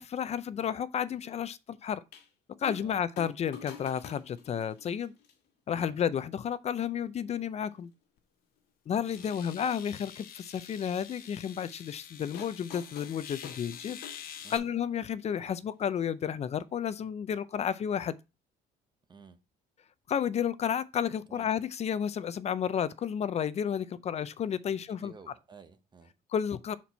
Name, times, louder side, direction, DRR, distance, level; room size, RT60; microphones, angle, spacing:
voice 1, 0.0-2.0 2.6-5.1 5.7-7.9 8.9-14.0 14.2-18.2 20.1-25.1 26.3-26.8, left 8 dB, 40° left, 0.4 m, -32 dB
sound 1, 2.1-2.3 2.6-2.9 3.2-5.3 6.2-6.3 7.3-7.4 7.7-7.8 9.0-9.6 12.3-14.7 16.0-16.1, left 7 dB, 80° left, 1.7 m, -48 dB
sound 2, 8.2-8.3 9.0-14.6, left 9 dB, 60° left, 0.9 m, -47 dB
voice 2, 24.7-26.1, right 5 dB, 25° right, 0.7 m, -53 dB
5.9 x 4.4 x 4.0 m
cardioid pair, 110°, 17 cm